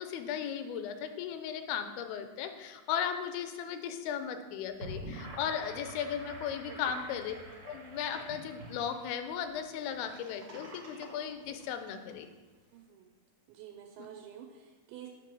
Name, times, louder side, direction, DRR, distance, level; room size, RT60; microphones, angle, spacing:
voice 1, 0.0-7.3 7.7-12.3, left 8 dB, 90° left, 8 dB, 2.5 m, -36 dB
Gurgling / Sink (filling or washing), 4.6-12.1, right 1 dB, 50° right, 1.7 m, -47 dB
voice 2, 12.7-13.1 13.5-15.1, right 10 dB, 85° right, 2 dB, 2.4 m, -49 dB
8.7 x 3.0 x 6.0 m, 1.2 s
omnidirectional pair, 4.2 m